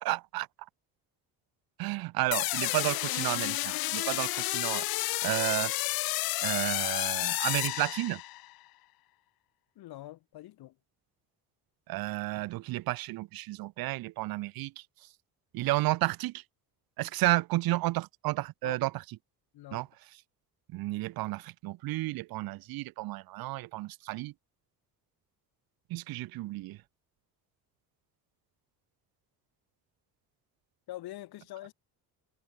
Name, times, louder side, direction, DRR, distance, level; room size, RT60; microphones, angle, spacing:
voice 1, 0.0-0.5 1.8-4.8 5.2-5.7 6.4-8.2 11.9-14.7 15.5-16.4 17.0-18.9 19.7-19.9 20.7-24.3 25.9-26.8, right 19 dB, 70° right, 0.6 m, -32 dB
sound 1, 2.3-8.5, left 19 dB, 75° left, 0.6 m, -31 dB
voice 2, 9.7-10.7 18.6-18.8 19.5-19.9 30.9-31.7, left 15 dB, 90° left, 5.1 m, -44 dB
cardioid pair, 165°, 36 cm